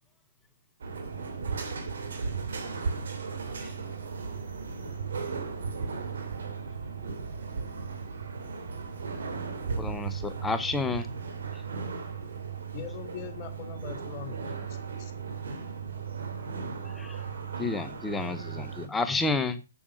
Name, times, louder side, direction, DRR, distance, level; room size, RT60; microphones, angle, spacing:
sound 1, 0.8-18.9, right 5 dB, 65° right, 2.8 m, -36 dB
voice 1, 2.4-4.5 5.7-6.0 6.3-6.8, right 2 dB, 85° right, 5.5 m, -56 dB
voice 2, 9.8-11.1 11.5-11.6 16.8-17.2 17.6-19.6, left 3 dB, 10° left, 0.9 m, -30 dB
voice 3, 12.7-14.7 15.0-15.1, left 10 dB, 35° left, 1.8 m, -41 dB
8.7 x 7.6 x 6.1 m
figure-of-eight pair, 125°, 0 cm